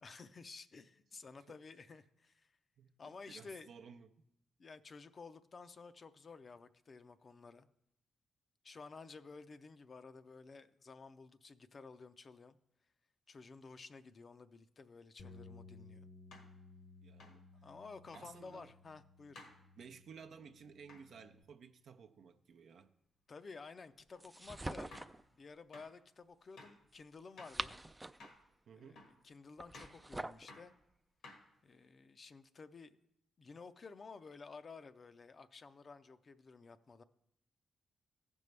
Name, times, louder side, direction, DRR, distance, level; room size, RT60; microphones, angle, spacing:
voice 1, 0.0-2.5 3.0-3.7 4.6-7.7 8.6-12.6 13.3-16.1 17.6-19.4 23.3-25.0 25.3-27.8 28.8-30.7 31.6-33.0 33.4-37.0, left 4 dB, 50° left, 0.5 m, -53 dB
voice 2, 2.8-4.1 17.0-17.5 18.1-18.7 19.8-22.9 28.7-29.1, right 6 dB, 75° right, 0.5 m, -56 dB
sound 1, 15.2-15.4 16.3-16.5 17.2-17.4 18.1-18.3 19.3-19.6 20.9-21.1 24.1-24.3 24.9-25.2 25.7-25.9 26.6-26.8 27.4-27.6 28.2-28.5 28.9-29.2 29.7-30.0 30.5-30.7 31.2-31.7, left 2 dB, 90° left, 1.6 m, -56 dB
sound 2, 15.2-21.4, left 3 dB, 65° left, 0.9 m, -58 dB
sound 3, 24.2-25.2 27.2-28.3 29.6-30.5, right 1 dB, 15° right, 0.3 m, -44 dB
15.0 x 5.3 x 3.3 m
cardioid pair, 60°, 0 cm